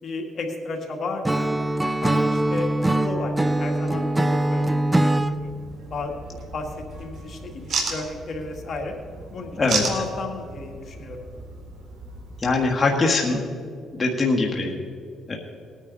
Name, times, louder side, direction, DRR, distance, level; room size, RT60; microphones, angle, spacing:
voice 1, 0.0-1.5 2.0-5.5 5.9-6.7 7.0-9.0 9.3-11.2, left 3 dB, 50° left, 2 dB, 2.0 m, -33 dB
Acoustic guitar / Strum, 1.2-5.3, right 1 dB, 15° right, 0.5 m, -22 dB
sound 1, 5.4-12.7, right 4 dB, 65° right, 2.7 m, -34 dB
voice 2, 12.4-13.4 13.9-14.7 15.3-15.4, left 3 dB, 30° left, -1 dB, 1.6 m, -22 dB
19.5 x 9.9 x 4.1 m, 2.3 s
cardioid pair, 90°, 0 cm